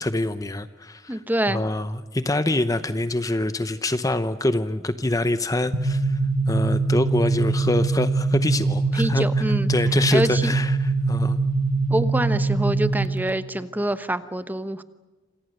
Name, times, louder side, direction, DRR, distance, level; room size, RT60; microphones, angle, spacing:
voice 1, 0.0-1.2 1.5-6.2 6.5-9.3 9.7-11.4, left 1 dB, 20° left, 11 dB, 0.8 m, -25 dB
voice 2, 1.1-1.6 8.9-9.7 10.1-10.5 11.9-14.8, right 1 dB, 10° right, 11 dB, 1.1 m, -25 dB
sound 1, 5.7-13.3, right 3 dB, 85° right, 1.6 m, -23 dB
27.5 x 27.5 x 6.6 m, 1.2 s
head